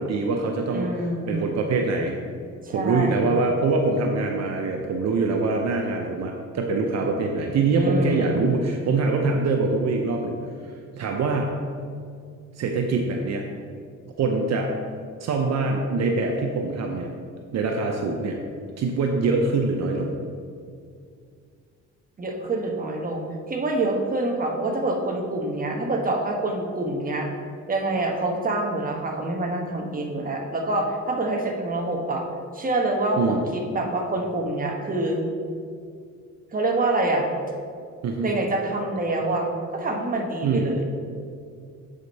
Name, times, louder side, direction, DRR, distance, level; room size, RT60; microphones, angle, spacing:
voice 1, 0.0-0.9 1.3-2.2 2.7-10.4 10.9-11.6 12.6-13.4 14.2-14.7 15.2-17.1 17.5-18.4 18.8-20.1 33.2-33.4 38.0-38.3 40.4-40.6, right 3 dB, 60° right, 2 dB, 0.7 m, -24 dB
voice 2, 0.7-1.6 2.6-3.3 7.8-8.4 22.2-27.3 27.7-32.2 32.5-35.2 36.5-37.3 38.2-40.8, right 2 dB, 30° right, 0 dB, 1.2 m, -26 dB
7.5 x 5.1 x 4.1 m, 2.3 s
cardioid pair, 90°, 30 cm